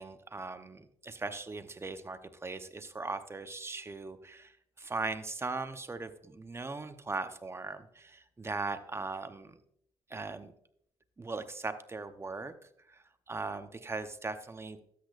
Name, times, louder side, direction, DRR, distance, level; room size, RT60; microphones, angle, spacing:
voice 1, 0.0-9.6 10.1-10.5 11.2-12.5 12.9-14.8, right 3 dB, 25° right, 9 dB, 0.8 m, -39 dB
12.5 x 8.4 x 2.5 m, 0.70 s
cardioid pair, 80°, 11 cm